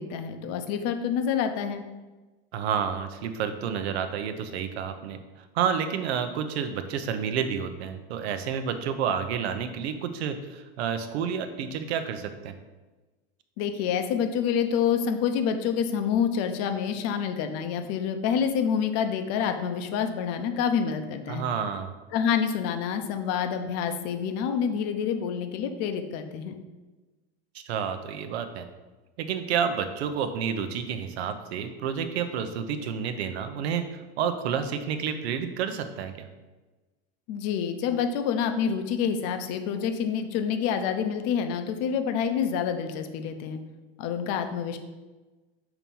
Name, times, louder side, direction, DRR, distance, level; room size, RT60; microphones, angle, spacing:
voice 1, 0.0-1.8 13.6-21.5 22.1-26.6 37.3-43.6 44.0-44.8, left 7 dB, 55° left, 7 dB, 0.7 m, -27 dB
voice 2, 2.5-5.2 5.5-12.5 21.3-21.9 27.5-28.7 29.2-36.3, right 7 dB, 80° right, 9 dB, 0.7 m, -30 dB
5.9 x 3.0 x 5.3 m, 1.2 s
supercardioid pair, 115°, 32 cm